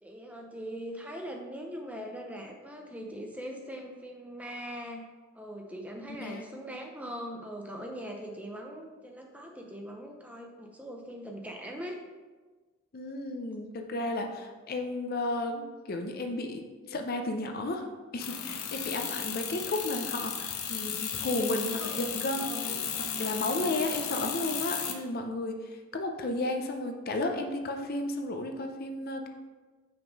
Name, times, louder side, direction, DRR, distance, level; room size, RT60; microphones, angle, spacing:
voice 1, 0.0-5.1 5.3-12.0 21.4-22.1 22.4-22.8, equal, 5° right, 2 dB, 0.5 m, -41 dB
voice 2, 12.9-17.9 18.1-22.5 23.2-29.3, left 2 dB, 45° left, 4 dB, 0.5 m, -33 dB
sound 1, 18.2-24.9, left 8 dB, 85° left, 0.7 m, -34 dB
5.8 x 3.7 x 5.1 m, 1.3 s
head